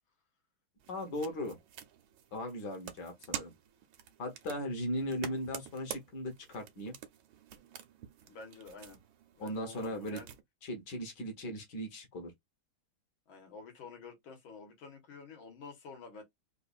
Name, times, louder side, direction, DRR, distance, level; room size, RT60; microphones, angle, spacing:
sound 1, 0.8-10.4, right 9 dB, 75° right, 1.4 m, -48 dB
voice 1, 0.9-1.6 2.3-3.5 4.2-6.9 9.4-10.2 10.6-12.3, left 1 dB, 60° left, 1.7 m, -38 dB
voice 2, 8.3-9.0 9.4-10.3 13.3-16.2, left 4 dB, 75° left, 2.0 m, -49 dB
4.1 x 2.6 x 2.4 m
omnidirectional pair, 2.2 m